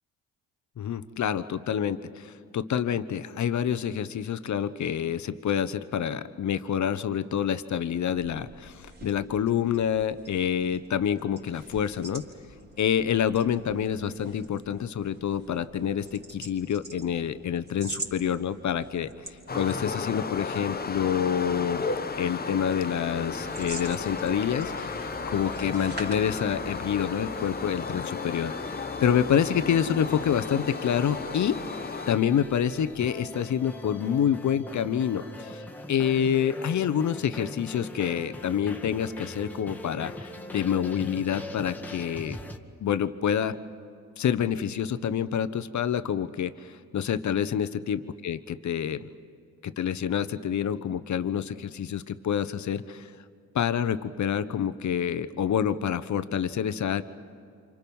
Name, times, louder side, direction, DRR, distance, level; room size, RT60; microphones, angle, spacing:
voice 1, 0.8-12.2 12.8-19.1 19.5-21.8 22.2-24.9 25.3-28.5 29.0-31.6 32.1-35.6 35.9-42.4 42.8-43.6 44.2-49.1 49.6-53.1 53.5-57.0, left 8 dB, 50° left, 13 dB, 1.1 m, -27 dB
sound 1, 8.0-26.9, right 2 dB, 25° right, 4.1 m, -46 dB
sound 2, 19.5-32.2, left 4 dB, 25° left, 1.0 m, -34 dB
sound 3, 23.3-42.6, left 1 dB, 5° left, 1.8 m, -42 dB
29.0 x 26.0 x 5.5 m, 2.5 s
supercardioid pair, 65°, 37 cm